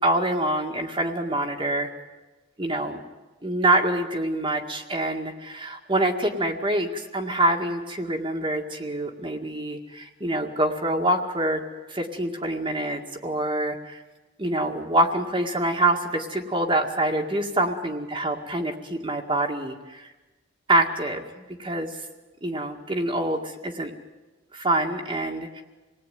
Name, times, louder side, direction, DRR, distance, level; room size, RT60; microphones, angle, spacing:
voice 1, 0.0-1.9 2.6-3.0 3.4-11.6 11.9-14.0 14.4-20.1 20.7-22.1 22.4-23.9 24.5-25.6, right 1 dB, 25° right, 1 dB, 2.0 m, -26 dB
27.5 x 19.5 x 9.4 m, 1.2 s
head